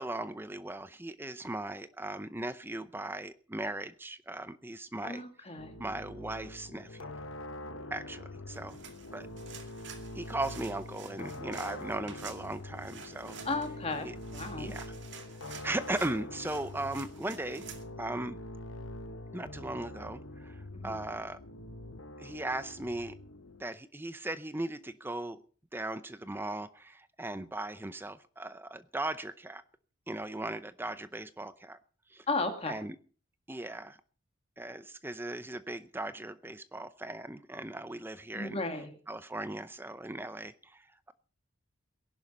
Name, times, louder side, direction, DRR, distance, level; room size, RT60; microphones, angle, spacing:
voice 1, 0.0-5.2 5.8-7.1 7.9-8.8 9.1-9.3 10.1-13.4 14.0-14.1 14.6-14.9 15.6-17.6 18.0-18.4 19.3-21.4 22.2-23.2 23.6-25.4 25.7-29.6 30.1-31.8 32.1-32.2 32.7-33.0 33.5-34.0 34.6-38.6 39.1-41.1, right 2 dB, 10° right, 13 dB, 0.6 m, -38 dB
voice 2, 5.0-5.7 13.4-14.1 14.3-14.7 20.7-21.0 32.3-32.7 38.3-39.0, left 3 dB, 30° left, 5 dB, 2.0 m, -34 dB
sound 1, 5.6-23.6, left 1 dB, 75° left, 1.1 m, -44 dB
sound 2, 8.5-17.8, right 7 dB, 60° right, 2.2 m, -50 dB
19.0 x 11.0 x 5.3 m, 0.43 s
head